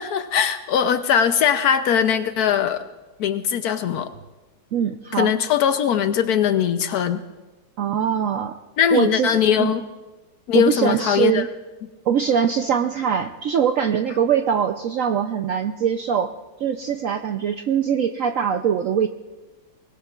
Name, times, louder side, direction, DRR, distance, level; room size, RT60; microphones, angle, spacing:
voice 1, 0.0-2.8 3.2-4.1 5.1-7.2 8.8-9.8 10.5-11.5, left 8 dB, 70° left, 10 dB, 1.0 m, -20 dB
voice 2, 4.7-5.3 7.8-8.6 8.9-9.7 10.5-11.5 12.1-16.3 16.6-19.1, right 8 dB, 70° right, 7 dB, 0.7 m, -22 dB
23.0 x 19.5 x 2.4 m, 1.2 s
omnidirectional pair, 1.9 m